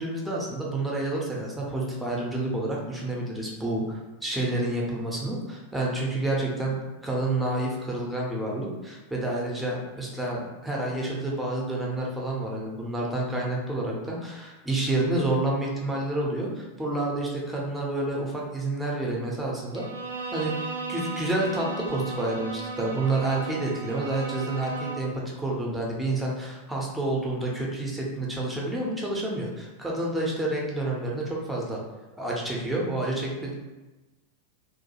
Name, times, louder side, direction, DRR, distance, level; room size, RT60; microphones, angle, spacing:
voice 1, 0.0-19.8 20.3-31.8 32.2-33.5, right 2 dB, 5° right, -3 dB, 0.6 m, -29 dB
Bowed string instrument, 19.7-25.2, right 4 dB, 75° right, 0.3 m, -36 dB
2.2 x 2.1 x 2.9 m, 1.1 s
figure-of-eight pair, 90°, 0 cm